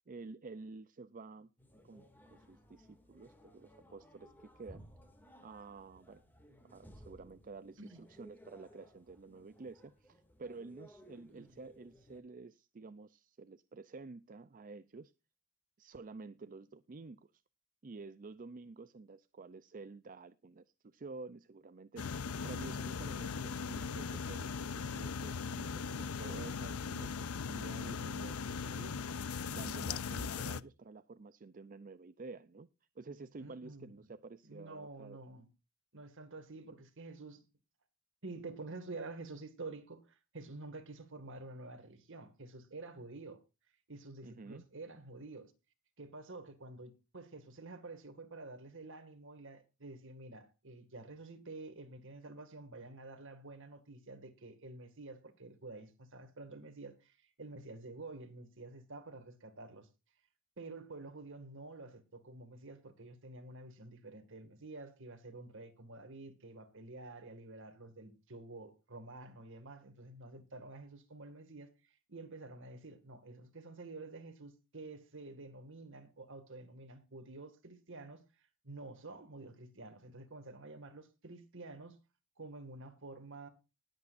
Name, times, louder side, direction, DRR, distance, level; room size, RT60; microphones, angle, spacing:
voice 1, 0.1-1.5 1.8-4.9 5.4-6.2 6.6-15.1 15.8-17.3 17.8-28.9 29.5-32.7 33.0-35.2 44.2-44.7, right 3 dB, 40° right, 0.5 m, -50 dB
sound 1, 1.6-12.2, equal, 10° left, 2.3 m, -60 dB
voice 2, 11.3-11.6 33.4-34.0 34.4-35.5 35.9-37.4 38.2-43.4 43.9-45.5 46.0-59.9 60.6-82.0 82.4-83.5, right 2 dB, 60° right, 2.0 m, -49 dB
sound 2, 22.0-30.6, left 5 dB, 75° left, 0.6 m, -39 dB
20.0 x 8.3 x 2.6 m
head